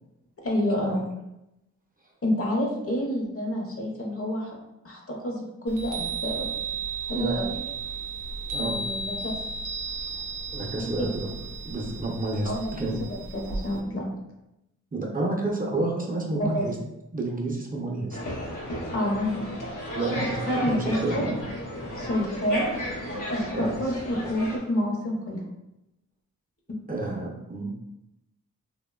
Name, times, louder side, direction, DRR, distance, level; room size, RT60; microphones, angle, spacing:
voice 1, 0.4-1.0 2.2-4.5 4.8-6.5 7.1-7.6 8.6-9.4 10.8-11.1 12.4-14.1 16.4-16.7 18.9-19.4 20.5-21.3 22.0-22.7 23.3-25.4 26.7-26.8, equal, 50° left, -1 dB, 0.7 m, -28 dB
Chime, 5.7-13.8, right 4 dB, 90° right, 0.5 m, -34 dB
voice 2, 7.1-7.4 8.5-8.8 10.5-13.0 14.9-16.7 17.1-18.2 19.9-21.4 23.5-23.7 26.9-27.8, right 2 dB, 30° right, -1 dB, 0.5 m, -30 dB
sound 1, 18.1-24.6, equal, 85° left, 0.8 m, -33 dB
2.9 x 2.1 x 2.2 m, 0.90 s
cardioid pair, 50°, 31 cm